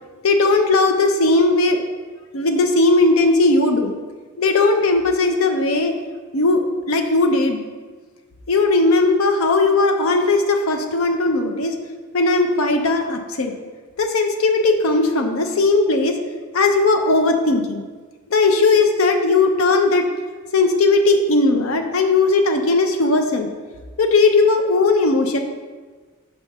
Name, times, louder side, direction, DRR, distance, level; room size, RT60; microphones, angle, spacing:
voice 1, 0.2-1.8 2.3-3.9 4.4-5.9 6.3-6.6 6.9-7.6 8.5-11.7 12.1-13.5 14.0-16.2 16.5-17.8 18.3-20.0 20.5-23.5 24.0-25.4, left 3 dB, 80° left, 5 dB, 0.6 m, -17 dB
5.4 x 3.5 x 5.6 m, 1.4 s
head